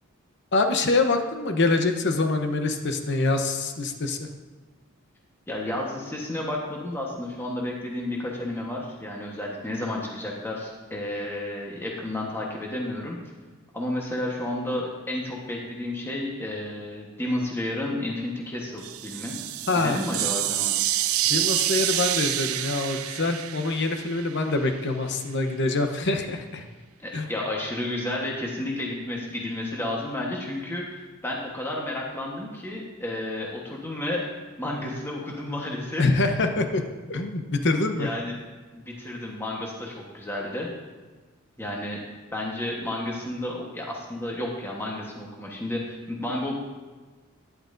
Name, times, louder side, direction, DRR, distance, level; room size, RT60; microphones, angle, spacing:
voice 1, 0.5-4.3 19.7-20.0 21.2-26.6 27.1-27.3 36.0-36.8 37.1-38.1, left 3 dB, 55° left, 5 dB, 0.9 m, -25 dB
voice 2, 5.5-13.2 13.7-19.4 19.7-20.7 27.0-34.3 34.6-36.0 38.0-38.4 38.7-40.7 41.6-46.6, left 1 dB, 10° left, -2 dB, 1.2 m, -31 dB
sound 1, 18.8-24.7, right 13 dB, 75° right, 0.4 m, -27 dB
12.0 x 10.5 x 2.6 m, 1.3 s
head